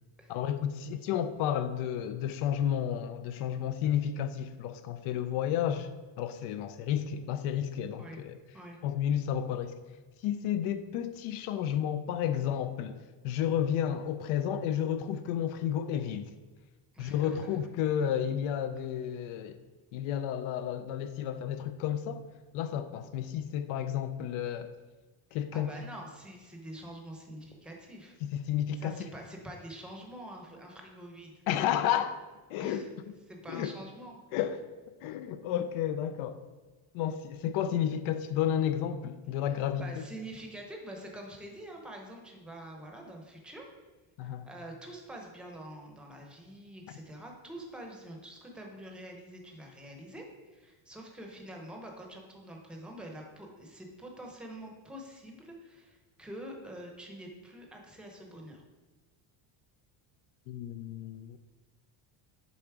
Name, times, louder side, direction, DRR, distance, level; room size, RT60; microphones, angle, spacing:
voice 1, 0.3-5.9 6.2-8.4 8.8-9.8 10.2-16.3 17.0-19.6 19.9-22.2 22.5-24.7 25.3-25.7 28.2-29.1 31.5-32.2 32.5-32.9 33.5-33.7 34.3-34.6 35.0-36.4 36.9-40.0 44.2-44.5 60.5-61.4, left 9 dB, 75° left, 10 dB, 0.6 m, -31 dB
voice 2, 16.9-17.4 25.3-28.2 28.7-31.3 32.6-32.9 33.3-34.2 39.4-39.5 39.7-43.6 44.2-58.6, right 1 dB, ahead, 1 dB, 0.7 m, -46 dB
7.0 x 4.0 x 4.6 m, 1.2 s
cardioid pair, 170°, 49 cm